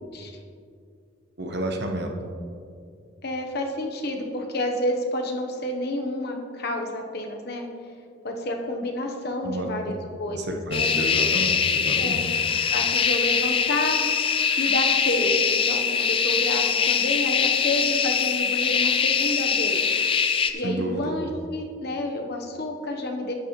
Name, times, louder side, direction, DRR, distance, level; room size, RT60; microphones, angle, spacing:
voice 1, 1.4-2.1 9.4-9.7 10.3-12.3 20.6-21.1, right 1 dB, 55° right, 3 dB, 1.0 m, -30 dB
voice 2, 3.2-7.7 8.2-11.0 12.0-12.3 12.7-14.3 14.6-19.8 20.5-23.3, left 1 dB, 50° left, 2 dB, 1.0 m, -29 dB
sound 1, 10.7-20.5, left 6 dB, 25° left, 0.4 m, -23 dB
11.5 x 8.8 x 3.1 m, 2.4 s
head